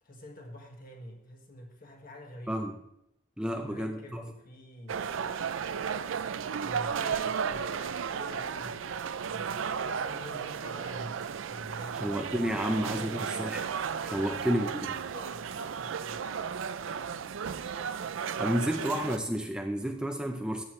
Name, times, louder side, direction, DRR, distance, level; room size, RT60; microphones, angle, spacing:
voice 1, 0.0-2.6 3.5-5.4 6.1-8.9 9.3-12.0 12.3-13.2 14.1-14.8 15.1-16.3, left 1 dB, 45° left, 2 dB, 1.8 m, -47 dB
voice 2, 2.5-2.8 3.4-4.2 12.0-13.6 14.0-14.7 18.4-20.6, equal, 5° right, 4 dB, 0.5 m, -31 dB
sound 1, 4.9-19.2, right 7 dB, 90° right, 0.5 m, -34 dB
14.0 x 7.9 x 3.2 m, 0.78 s
head